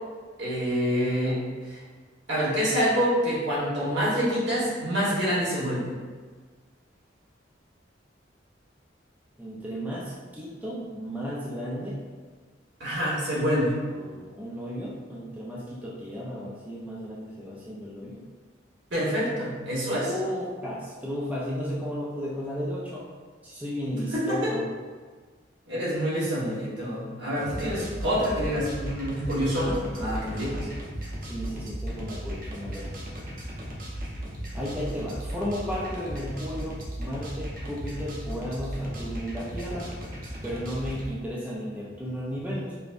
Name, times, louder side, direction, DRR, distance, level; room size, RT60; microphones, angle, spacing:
voice 1, 0.4-1.8 2.3-5.9 12.8-13.8 18.9-20.1 24.1-24.5 25.7-30.7, equal, 70° right, -7 dB, 1.3 m, -27 dB
voice 2, 9.4-12.0 13.9-18.2 19.9-23.1 23.4-24.7 31.2-32.9 34.5-40.0 40.4-42.8, equal, 10° right, -6 dB, 0.4 m, -34 dB
sound 1, 27.4-41.1, equal, 50° right, 0.8 m, -36 dB
5.0 x 2.2 x 2.5 m, 1.5 s
head